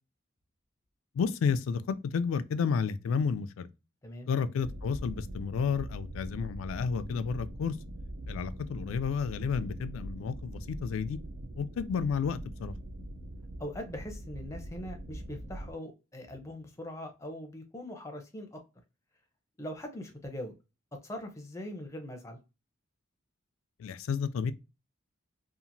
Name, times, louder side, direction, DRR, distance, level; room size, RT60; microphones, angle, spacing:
voice 1, 1.2-3.7 4.3-7.7 8.3-11.2 11.6-12.7 23.8-24.5, left 6 dB, 85° left, 0.3 m, -31 dB
sound 1, 4.6-15.7, right 1 dB, 65° right, 0.4 m, -42 dB
voice 2, 13.6-18.6 19.6-20.5 21.0-22.4, left 1 dB, 15° left, 0.5 m, -41 dB
2.9 x 2.4 x 2.5 m
head